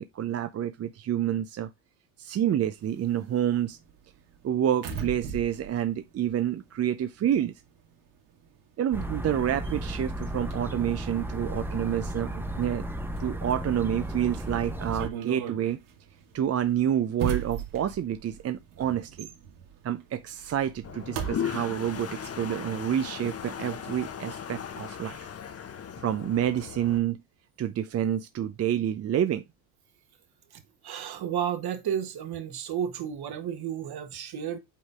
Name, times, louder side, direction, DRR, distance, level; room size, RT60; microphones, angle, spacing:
voice 1, 0.0-1.7 2.2-3.8 4.4-7.5 8.8-12.8 13.2-15.8 16.3-19.3 19.8-25.2 26.0-27.2 27.6-29.4, right 10 dB, 30° right, 0.6 m, -28 dB
sound 1, 2.8-7.2 7.5-21.4, right 8 dB, 75° right, 2.2 m, -40 dB
sound 2, 8.9-15.1, right 1 dB, 5° right, 1.0 m, -34 dB
Toilet flush, 20.8-27.0, left 8 dB, 30° left, 1.0 m, -37 dB
voice 2, 30.8-34.6, right 9 dB, 50° right, 1.6 m, -32 dB
8.3 x 4.0 x 3.5 m
hypercardioid pair, 80°, 49 cm